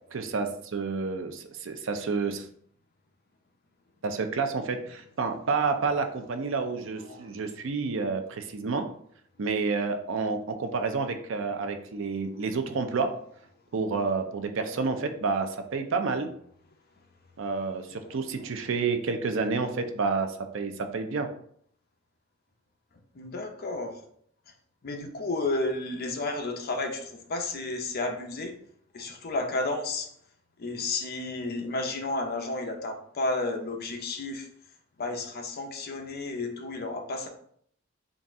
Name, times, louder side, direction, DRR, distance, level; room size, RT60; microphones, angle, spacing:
voice 1, 0.1-2.5 4.0-8.9 9.4-13.2 13.7-16.3 17.4-21.3, right 4 dB, 65° right, 7 dB, 0.5 m, -29 dB
voice 2, 6.7-7.3 14.7-14.9 17.9-18.5 23.1-24.0 24.8-28.5 28.9-30.1 30.6-34.5 35.0-37.3, left 2 dB, 50° left, 4 dB, 0.6 m, -32 dB
4.0 x 2.4 x 3.5 m, 0.63 s
head